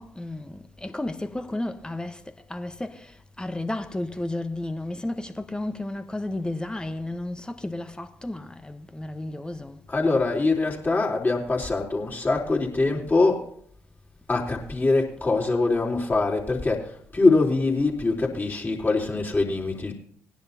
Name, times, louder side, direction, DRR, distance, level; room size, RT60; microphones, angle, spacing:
voice 1, 0.0-9.9, left 1 dB, 10° left, 1.2 m, -33 dB
voice 2, 9.9-13.4 14.3-19.9, left 3 dB, 25° left, 3.7 m, -23 dB
20.0 x 10.5 x 2.9 m
figure-of-eight pair, 45°, 7 cm